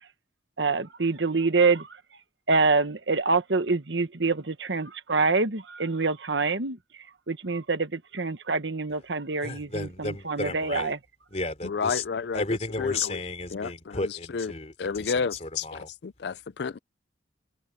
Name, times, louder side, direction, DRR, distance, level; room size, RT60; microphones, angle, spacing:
voice 1, 0.6-1.9 2.5-6.8 7.3-11.0, right 4 dB, 80° right, 1.4 m, -26 dB
voice 2, 9.4-10.9 11.3-12.0 12.3-15.9, left 2 dB, 35° left, 3.4 m, -33 dB
voice 3, 11.6-12.4 12.8-13.2 13.5-14.1 14.3-14.5 14.8-16.8, left 5 dB, 65° left, 0.4 m, -31 dB
head